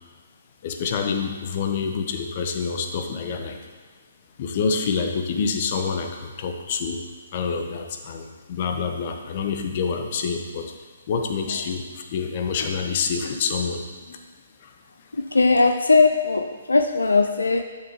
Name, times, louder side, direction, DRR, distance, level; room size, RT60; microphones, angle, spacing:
voice 1, 0.6-3.6 4.4-7.0 7.3-10.6 11.1-14.2 14.6-14.7, left 5 dB, 45° left, 5 dB, 0.9 m, -27 dB
voice 2, 15.1-17.6, left 3 dB, 80° left, 6 dB, 0.4 m, -19 dB
11.0 x 6.6 x 3.0 m, 1.5 s
figure-of-eight pair, 130°, 0 cm